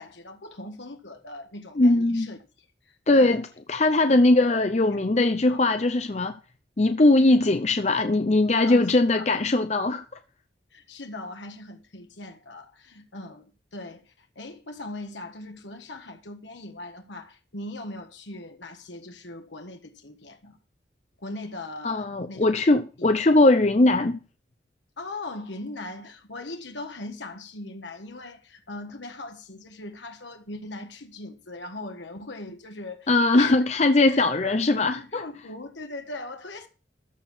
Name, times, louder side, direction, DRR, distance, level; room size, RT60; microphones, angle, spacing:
voice 1, 0.0-2.4 2.8-3.5 4.1-4.2 4.8-5.0 5.5-5.7 8.6-8.9 9.1-9.4 10.7-20.6 21.2-22.5 25.0-33.6 34.1-34.7 35.0-36.7, left 2 dB, 80° left, 1.5 m, -40 dB
voice 2, 1.8-2.3 3.1-3.4 3.7-6.4 6.8-10.0 21.8-24.2 33.1-35.2, left 2 dB, 35° left, 0.6 m, -20 dB
13.5 x 4.6 x 7.2 m
head